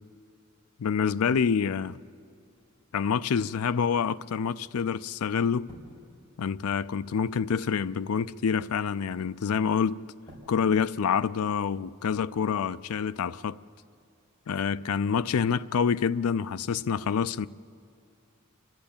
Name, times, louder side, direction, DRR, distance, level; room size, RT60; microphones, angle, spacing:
voice 1, 0.8-2.0 2.9-5.7 6.4-10.0 10.5-13.6 14.5-17.5, left 6 dB, 85° left, 0.4 m, -27 dB
sound 1, 2.0-12.8, equal, 20° left, 5.3 m, -59 dB
30.0 x 12.0 x 8.7 m
head